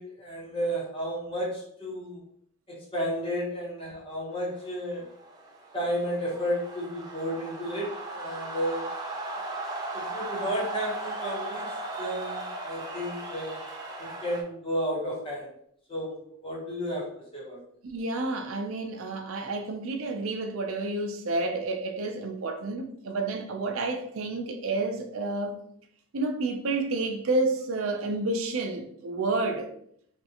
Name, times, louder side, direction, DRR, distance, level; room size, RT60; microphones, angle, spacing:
voice 1, 0.0-2.2 2.7-5.1 5.7-9.1 9.9-13.7 14.0-15.5 15.9-17.6, equal, 25° left, 1.0 m, -33 dB
sound 1, 4.5-14.4, right 2 dB, 20° right, 0.5 m, -37 dB
voice 2, 17.8-25.5 26.1-29.7, right 2 dB, 70° right, 0.5 m, -30 dB
3.5 x 2.4 x 2.8 m
head